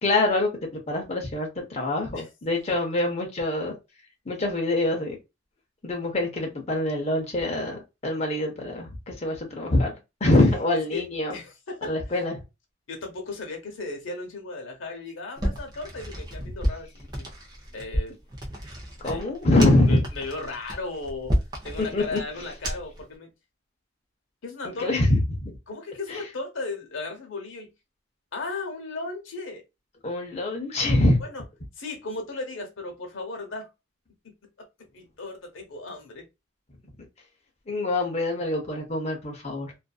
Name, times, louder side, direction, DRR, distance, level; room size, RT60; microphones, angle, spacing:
voice 1, 0.0-3.7 4.3-5.2 5.8-9.9 10.2-11.4 11.8-12.4 19.0-20.1 21.8-22.2 24.6-25.5 26.1-26.2 30.0-31.2 37.7-39.7, left 2 dB, 35° left, 0.7 m, -24 dB
voice 2, 10.4-11.0 11.3-12.0 12.9-17.3 17.7-18.2 19.0-19.2 19.9-21.3 21.6-23.3 24.4-24.9 25.7-27.7 28.3-29.6 31.2-31.4 31.8-33.7 34.2-34.7 34.9-36.2, left 3 dB, 80° left, 0.8 m, -36 dB
sound 1, 15.4-23.0, equal, 20° right, 0.7 m, -31 dB
2.5 x 2.4 x 2.3 m
head